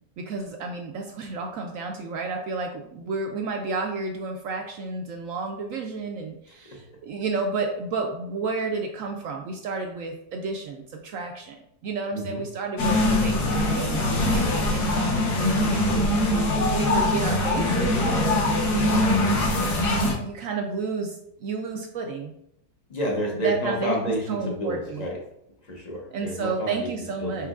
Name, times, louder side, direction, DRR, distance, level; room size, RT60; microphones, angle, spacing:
voice 1, 0.2-11.6 11.8-16.2 16.6-18.4 19.9-22.3 23.4-23.9 24.3-25.1 26.1-27.5, right 4 dB, 70° right, 3 dB, 0.8 m, -31 dB
voice 2, 6.5-6.8 12.1-12.4 15.5-16.2 22.9-25.2 25.6-26.9 27.2-27.5, equal, 40° left, -1 dB, 0.6 m, -30 dB
sound 1, 12.8-20.1, left 1 dB, 75° left, 1.5 m, -22 dB
4.5 x 4.4 x 2.4 m, 0.75 s
omnidirectional pair, 1.8 m